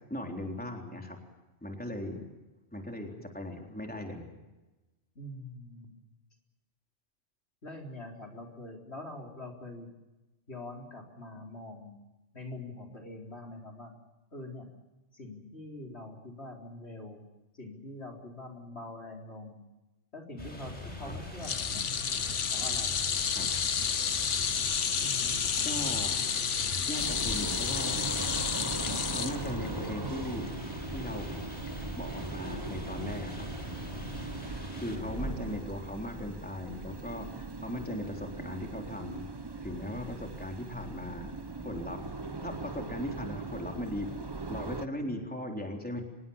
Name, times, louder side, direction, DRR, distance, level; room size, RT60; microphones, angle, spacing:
voice 1, 0.1-1.2 1.6-2.3 2.7-4.3 21.0-21.1 23.4-23.5 25.6-26.2 26.9-28.0 29.1-30.5 30.9-31.3 32.0-33.4 34.8-39.3 39.6-41.3 41.6-46.0, left 1 dB, 5° left, 2 dB, 3.8 m, -38 dB
voice 2, 5.1-5.9 7.6-9.9 10.5-11.9 12.3-13.9 14.3-14.7 15.1-17.2 17.5-19.6 20.1-21.8 22.5-23.0 24.9-25.6, left 1 dB, 65° left, 1 dB, 4.5 m, -44 dB
sound 1, 20.4-35.6, left 1 dB, 35° left, 5.0 m, -42 dB
sound 2, 21.4-29.9 30.3-30.5 31.7-31.8, left 7 dB, 80° left, 1.4 m, -31 dB
sound 3, 27.0-44.9, right 3 dB, 25° right, 0.8 m, -40 dB
25.5 x 21.5 x 7.2 m, 1.1 s
omnidirectional pair, 1.2 m